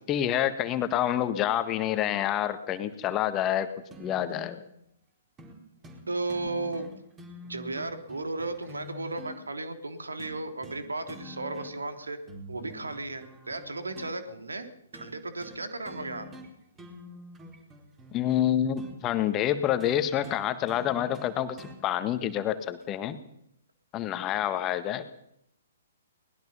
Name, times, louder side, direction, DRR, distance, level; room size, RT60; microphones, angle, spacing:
voice 1, 0.1-3.7 4.0-4.6 18.1-23.2 23.9-25.0, left 11 dB, 25° left, 10 dB, 1.7 m, -27 dB
sound 1, 3.9-4.5 5.4-5.6 5.8-6.0 6.3-9.4 10.2-10.8 11.1-11.9 12.3-14.1 14.9-15.1 15.4-15.6 15.9-16.5 16.8-19.0 19.8-21.8 22.8-22.9, left 1 dB, 15° right, 4.3 m, -46 dB
voice 2, 6.1-6.9 7.4-12.2 12.5-16.3, right 2 dB, 75° right, 8 dB, 3.2 m, -35 dB
23.5 x 20.5 x 5.7 m, 0.74 s
figure-of-eight pair, 120°, 0 cm